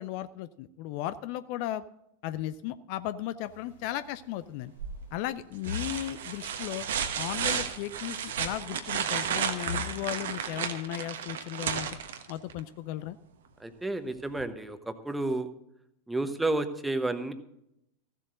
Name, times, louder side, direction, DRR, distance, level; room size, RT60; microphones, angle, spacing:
voice 1, 0.0-1.8 2.2-4.7 5.1-6.8 7.2-11.9 12.3-13.2, left 13 dB, 50° left, 14 dB, 0.5 m, -35 dB
sound 1, 3.4-5.3 5.6-9.3 9.6-10.6, left 7 dB, 65° left, 1.9 m, -46 dB
sound 2, 4.8-5.2 5.6-12.6 14.4-14.5, right 8 dB, 65° right, 1.2 m, -33 dB
voice 2, 13.6-15.5 16.1-17.3, right 2 dB, 5° right, 10 dB, 1.0 m, -31 dB
15.0 x 7.5 x 6.3 m, 0.79 s
figure-of-eight pair, 90°, 0 cm